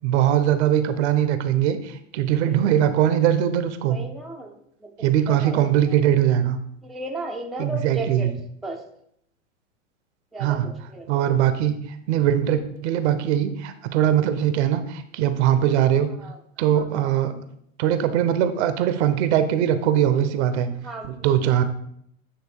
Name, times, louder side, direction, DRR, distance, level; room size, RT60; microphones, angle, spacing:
voice 1, 0.0-4.0 5.0-6.6 7.6-8.3 10.4-10.7 11.1-11.8 12.1-16.1 16.6-17.4 17.8-20.7 21.0-21.6, right 10 dB, 60° right, 10 dB, 0.8 m, -21 dB
voice 2, 3.9-4.9 5.3-5.6 6.8-8.3 8.6-8.8 10.3-10.6 10.9-11.1 16.2-16.3 16.7-17.1 20.8-21.3, right 2 dB, ahead, 0 dB, 0.6 m, -34 dB
8.5 x 3.1 x 4.5 m, 0.70 s
hypercardioid pair, 110°, 39 cm